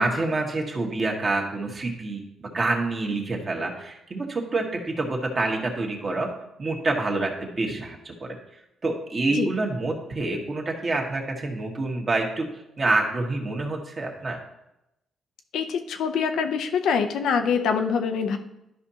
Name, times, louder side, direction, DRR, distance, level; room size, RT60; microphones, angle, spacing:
voice 1, 0.0-6.3 6.6-8.4 8.8-12.5 12.8-14.4, right 2 dB, 35° right, 1 dB, 1.5 m, -27 dB
voice 2, 15.5-18.4, left 6 dB, 80° left, 6 dB, 0.6 m, -25 dB
12.0 x 5.2 x 2.8 m, 0.87 s
cardioid pair, 90°, 0 cm